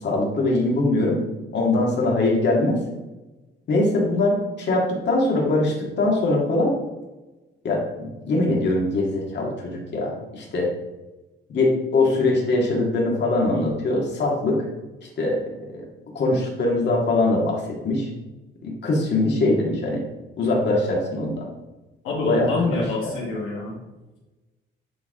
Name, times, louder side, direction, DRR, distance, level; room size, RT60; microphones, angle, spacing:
voice 1, 0.0-1.2 1.5-2.8 3.7-6.7 7.6-10.7 11.5-14.6 15.2-15.4 15.7-15.8 16.1-18.1 18.6-20.0 20.4-21.5 22.3-23.1, left 2 dB, 60° left, -2 dB, 2.1 m, -22 dB
voice 2, 22.0-23.8, left 2 dB, 85° left, -5 dB, 1.7 m, -26 dB
9.1 x 3.6 x 3.7 m, 1.1 s
cardioid pair, 90°, 20 cm